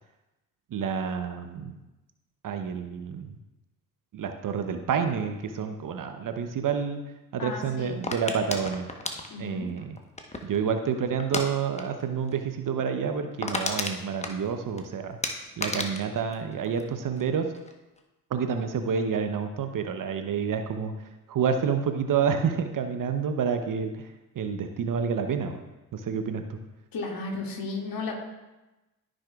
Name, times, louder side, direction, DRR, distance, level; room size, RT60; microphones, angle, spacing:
voice 1, 0.7-1.8 2.4-3.4 4.1-7.0 7.3-8.9 9.4-10.0 10.4-15.2 15.6-17.5 18.3-25.6 25.9-26.6, right 6 dB, 45° right, 7 dB, 0.9 m, -29 dB
voice 2, 7.4-8.0 9.3-9.7 26.9-28.1, left 3 dB, 50° left, -1 dB, 2.4 m, -34 dB
sound 1, 8.0-10.6 11.2-11.5 11.8-12.0 12.3-12.4 12.8-12.9 13.1-14.8 15.2-17.3 17.5-18.0, left 2 dB, 15° left, 1.2 m, -33 dB
14.5 x 6.3 x 2.4 m, 1.0 s
figure-of-eight pair, 45°, 47 cm